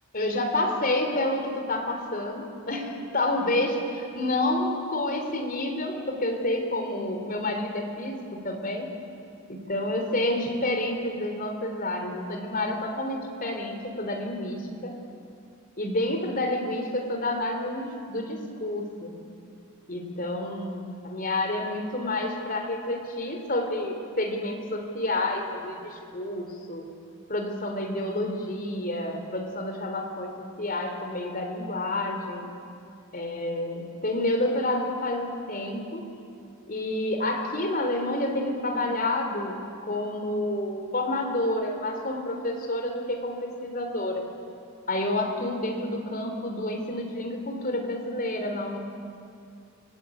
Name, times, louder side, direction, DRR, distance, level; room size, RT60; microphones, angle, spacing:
voice 1, 0.1-8.9 9.5-14.9 15.8-19.1 19.9-26.9 27.3-30.3 30.6-32.5 33.1-36.0 36.7-44.3 44.9-48.8, left 1 dB, 40° left, 3 dB, 3.7 m, -29 dB
28.5 x 20.0 x 8.7 m, 2.4 s
head